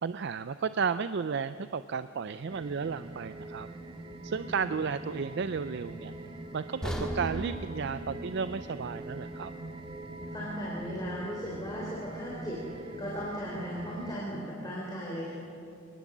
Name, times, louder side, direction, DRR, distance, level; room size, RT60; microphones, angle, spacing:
voice 1, 0.0-3.7 4.2-6.1 6.5-9.5, right 5 dB, 55° right, 13 dB, 0.4 m, -33 dB
sound 1, 2.5-14.2, right 1 dB, 25° right, 0.8 m, -43 dB
sound 2, 6.8-10.9 11.2-11.4 12.0-12.1, right 1 dB, 5° left, 1.8 m, -40 dB
voice 2, 10.3-15.3, equal, 20° left, -5 dB, 3.7 m, -37 dB
24.5 x 19.5 x 7.3 m, 2.7 s
head